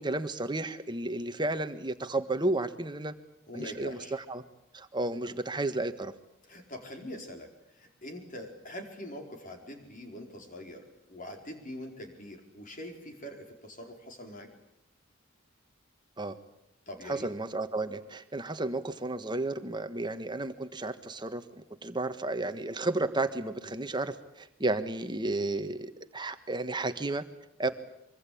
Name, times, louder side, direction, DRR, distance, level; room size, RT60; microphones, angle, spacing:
voice 1, 0.0-3.1 3.5-4.4 4.7-6.1 16.2-16.4 17.0-27.2 27.6-27.7, right 2 dB, 20° right, 9 dB, 1.5 m, -32 dB
voice 2, 3.5-4.1 5.2-5.3 6.4-14.5 16.9-17.3 23.6-23.7, left 1 dB, 40° left, 4 dB, 4.8 m, -44 dB
25.0 x 24.0 x 8.7 m, 0.79 s
head